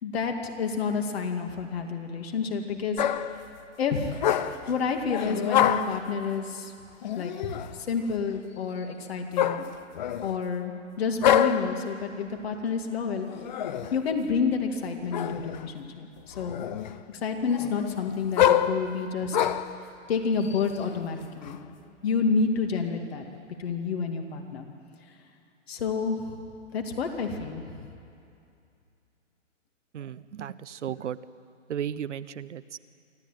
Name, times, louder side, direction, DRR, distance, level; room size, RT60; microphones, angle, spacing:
voice 1, 0.0-3.0 3.8-4.1 4.7-6.7 7.1-7.3 7.7-9.6 10.2-13.3 13.9-16.7 17.1-19.4 20.1-21.6 22.0-23.2 23.6-24.7 25.7-26.3 26.7-27.7, left 5 dB, 50° left, 4 dB, 2.4 m, -29 dB
sound 1, 3.0-3.4 4.1-4.7 5.1-6.0 7.0-7.8 9.4-10.4 11.2-11.8 13.3-14.0 15.1-15.7 16.2-17.0 17.4-19.8 20.4-21.5, left 10 dB, 35° left, 0.7 m, -26 dB
voice 2, 29.9-31.2 31.7-32.8, right 9 dB, 65° right, 16 dB, 0.9 m, -35 dB
24.5 x 14.0 x 9.1 m, 2.5 s
hypercardioid pair, 145°, 38 cm